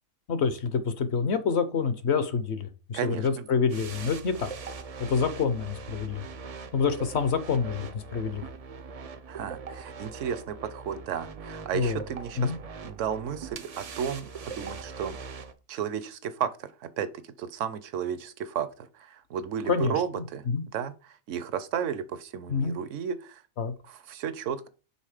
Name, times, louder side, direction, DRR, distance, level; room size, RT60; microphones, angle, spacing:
voice 1, 0.3-4.5 5.1-6.3 6.7-8.4 11.7-12.0 12.4-12.5 19.7-19.9 20.5-20.6 22.5-22.8 23.6-23.7, left 5 dB, 60° left, 1.0 m, -27 dB
voice 2, 2.9-3.5 9.3-12.5 12.8-15.2 15.7-20.4 20.7-23.4 23.8-24.7, right 8 dB, 70° right, 0.9 m, -33 dB
sound 1, 3.7-15.5, right 5 dB, 50° right, 0.4 m, -41 dB
5.6 x 3.7 x 4.9 m
omnidirectional pair, 1.4 m